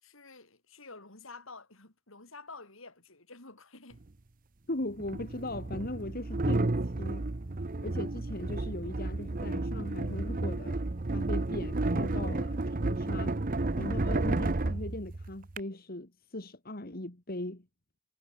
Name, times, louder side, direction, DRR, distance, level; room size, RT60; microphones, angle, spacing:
voice 1, 0.0-4.0, left 3 dB, 70° left, 5.6 m, -50 dB
sound 1, 3.9-4.0 5.0-15.6, right 2 dB, 40° right, 0.8 m, -32 dB
voice 2, 4.7-7.3 7.8-10.8 11.1-13.4 13.8-17.7, left 1 dB, 45° left, 2.1 m, -39 dB
head